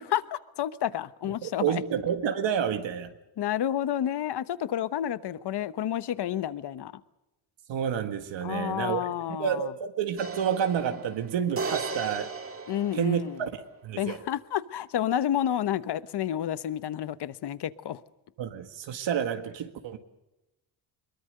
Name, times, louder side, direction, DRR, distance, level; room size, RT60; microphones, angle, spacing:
voice 1, 0.0-1.8 3.4-7.0 8.4-9.7 12.7-13.4 14.0-18.0, left 11 dB, 60° left, 1.1 m, -30 dB
voice 2, 1.4-3.1 7.7-9.1 9.4-12.3 12.9-13.5 13.8-14.2 18.4-20.0, right 8 dB, 70° right, 1.9 m, -29 dB
sound 1, 10.2-13.6, right 4 dB, 30° right, 2.3 m, -36 dB
23.5 x 22.0 x 6.7 m
cardioid pair, 130°, 46 cm